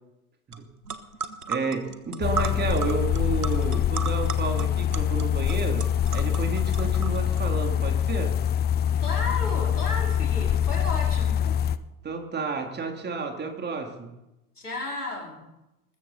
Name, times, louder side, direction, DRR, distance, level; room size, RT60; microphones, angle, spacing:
sound 1, 0.5-0.6 0.8-7.4, right 5 dB, 90° right, 1.2 m, -35 dB
voice 1, 1.5-5.8 6.1-8.3 12.0-14.1, right 4 dB, 25° right, 4 dB, 2.9 m, -31 dB
sound 2, 2.2-11.8, left 9 dB, 20° left, 0.6 m, -25 dB
voice 2, 9.0-11.6 14.6-15.4, left 3 dB, 90° left, -1 dB, 4.5 m, -33 dB
20.0 x 14.5 x 4.1 m, 0.93 s
figure-of-eight pair, 80°, 44 cm